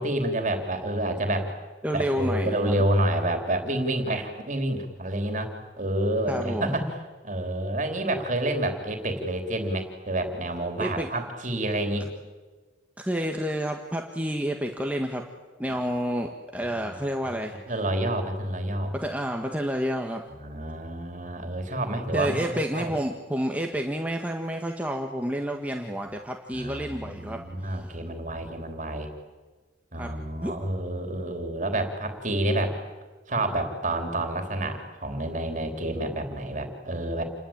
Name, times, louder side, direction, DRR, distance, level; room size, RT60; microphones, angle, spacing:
voice 1, 0.0-1.5 1.9-5.5 5.8-6.9 7.2-12.1 15.7-15.8 16.6-17.3 17.7-18.9 20.4-22.4 22.7-22.9 26.5-29.1 29.9-32.8 33.3-37.2, right 1 dB, 45° right, 5 dB, 3.5 m, -29 dB
voice 2, 1.8-2.8 6.3-6.7 10.8-11.1 13.0-15.2 15.6-17.6 18.9-20.2 22.1-27.9 29.9-30.1 30.4-30.6, equal, 10° right, 2 dB, 1.6 m, -29 dB
28.5 x 21.5 x 8.8 m, 1.3 s
head